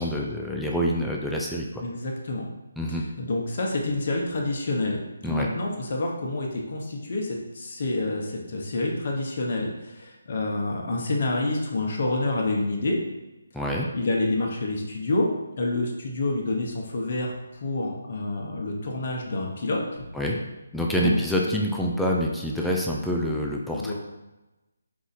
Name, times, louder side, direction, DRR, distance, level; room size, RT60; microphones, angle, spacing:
voice 1, 0.0-1.8 2.8-3.0 5.2-5.5 13.5-13.9 20.1-20.4 20.7-23.9, equal, ahead, -2 dB, 0.4 m, -26 dB
voice 2, 1.8-2.5 2.9-13.0 13.9-15.3 15.6-17.3 17.6-20.0 21.0-21.2 21.4-21.6 23.7-23.9, left 2 dB, 50° left, 0 dB, 0.9 m, -28 dB
4.7 x 2.6 x 4.0 m, 1.0 s
figure-of-eight pair, 155°, 0 cm